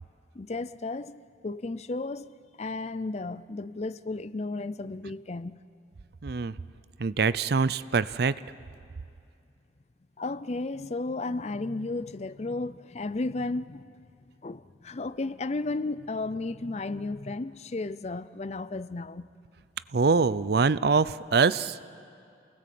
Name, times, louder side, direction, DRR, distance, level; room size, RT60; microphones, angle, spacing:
voice 1, 0.3-5.6 10.2-14.0 14.4-19.3, left 3 dB, 35° left, 0.5 m, -34 dB
voice 2, 6.2-6.5 7.0-8.3 19.9-21.8, right 4 dB, 55° right, 0.5 m, -24 dB
28.5 x 19.0 x 7.7 m
head